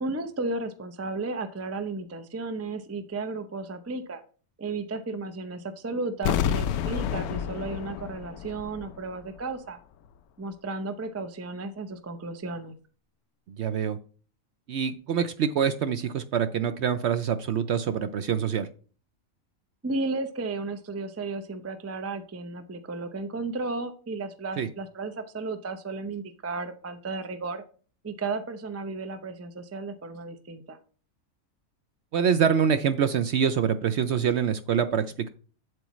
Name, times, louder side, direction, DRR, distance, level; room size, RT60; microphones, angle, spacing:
voice 1, 0.0-4.2 4.6-9.8 10.4-12.7 19.8-27.6 28.0-30.8, right 3 dB, 25° right, 9 dB, 0.3 m, -34 dB
sound 1, 6.2-9.1 9.4-9.5, left 9 dB, 90° left, 1.1 m, -29 dB
voice 2, 13.6-14.0 14.7-18.7 24.6-24.7 32.1-35.3, right 7 dB, 65° right, 11 dB, 0.7 m, -25 dB
8.3 x 7.8 x 3.1 m, 0.40 s
omnidirectional pair, 1.5 m